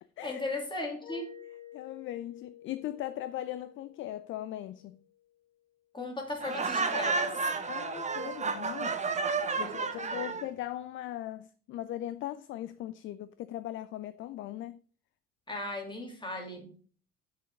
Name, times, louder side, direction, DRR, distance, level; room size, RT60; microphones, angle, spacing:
voice 1, 0.2-1.3 5.9-7.5 9.6-10.4 15.5-16.8, left 2 dB, 10° left, 2.8 m, -37 dB
Mallet percussion, 1.1-5.7, left 11 dB, 65° left, 1.8 m, -53 dB
voice 2, 1.7-5.0 7.7-9.0 9.6-14.8, left 13 dB, 30° left, 0.4 m, -39 dB
Laughter, 6.4-10.5, right 4 dB, 15° right, 0.9 m, -31 dB
7.8 x 6.5 x 4.9 m
figure-of-eight pair, 60°, 40 cm